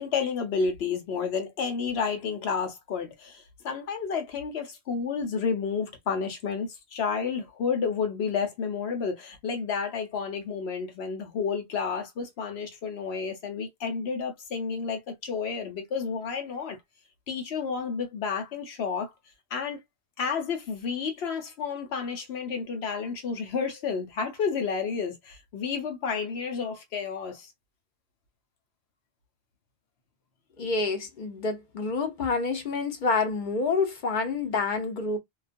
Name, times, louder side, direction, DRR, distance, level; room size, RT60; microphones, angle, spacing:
voice 1, 0.0-16.8 17.3-19.1 19.5-19.8 20.2-27.5, left 5 dB, 90° left, 1.0 m, -31 dB
voice 2, 30.6-35.2, left 4 dB, 55° left, 0.8 m, -28 dB
2.4 x 2.3 x 2.5 m
omnidirectional pair, 1.0 m